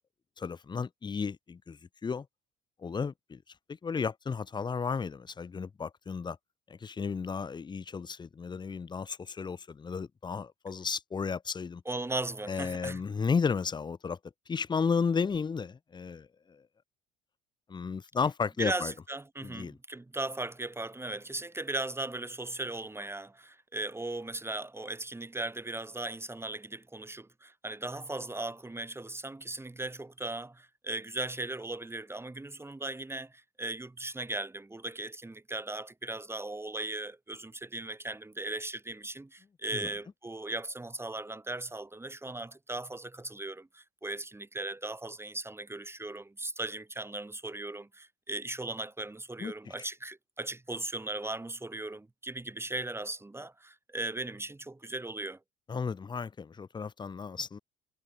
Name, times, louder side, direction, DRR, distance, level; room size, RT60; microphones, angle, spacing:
voice 1, 0.4-2.3 2.8-3.4 3.7-6.4 6.7-11.8 12.5-14.2 14.5-16.6 17.7-18.9 19.4-19.8 39.7-39.9 49.4-49.9 55.7-57.6, left 5 dB, 20° left, 0.7 m, -33 dB
voice 2, 11.9-13.0 18.6-55.4, right 2 dB, 10° right, 2.4 m, -38 dB
cardioid pair, 100°, 21 cm